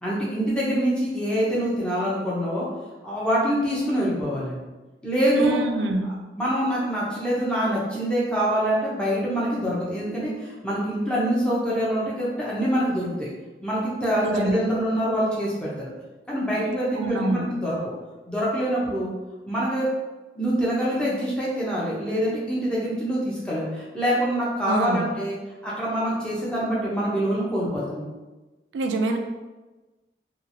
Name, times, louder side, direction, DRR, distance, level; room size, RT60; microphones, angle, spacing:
voice 1, 0.0-2.7 3.0-4.6 5.0-5.6 6.3-13.3 13.6-15.9 16.3-17.8 18.3-19.1 19.5-19.8 20.3-25.4 25.6-28.1, equal, 5° left, -7 dB, 0.6 m, -25 dB
voice 2, 5.3-6.1 14.2-14.6 16.9-17.5 24.6-25.1 28.7-29.2, right 2 dB, 85° right, 5 dB, 0.3 m, -26 dB
2.9 x 2.4 x 2.6 m, 1.2 s
head